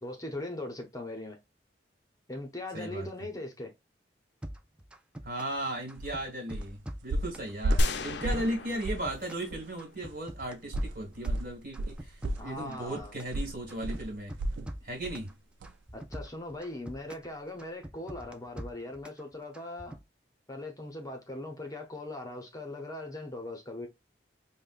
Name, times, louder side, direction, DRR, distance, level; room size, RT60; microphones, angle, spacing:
voice 1, 0.0-1.4 2.3-3.7 12.4-13.3 15.9-20.0 20.5-23.9, left 1 dB, 20° left, 0.7 m, -40 dB
voice 2, 2.7-3.1 5.2-14.4 14.8-15.3, right 1 dB, 50° right, 1.7 m, -36 dB
sound 1, 4.4-5.6 5.9-7.5 7.8-9.5 9.8-11.4 11.7-13.4 13.7-15.3 15.6-17.3 17.6-19.2 19.5-20.0, right 1 dB, 5° right, 0.3 m, -43 dB
sound 2, 6.0-6.1 6.5-6.8 7.1-8.6 8.8-9.1 9.5-9.6 10.7-14.7 15.0-15.3 15.6-15.7, right 1 dB, 80° right, 0.4 m, -33 dB
sound 3, 7.8-10.1, left 1 dB, 65° left, 0.5 m, -32 dB
5.3 x 2.1 x 2.4 m
head